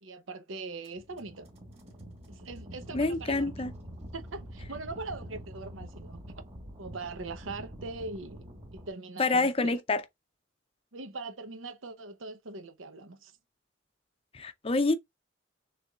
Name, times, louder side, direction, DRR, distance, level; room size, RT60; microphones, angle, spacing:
voice 1, 0.0-1.5 2.3-3.7 4.1-6.4 6.8-9.8 10.9-13.3, right 3 dB, 85° right, 0.9 m, -41 dB
sound 1, 0.8-8.9, equal, 35° right, 2.2 m, -45 dB
voice 2, 2.9-3.7 9.2-10.0 14.3-14.9, left 3 dB, 30° left, 0.5 m, -27 dB
6.5 x 3.4 x 2.4 m
head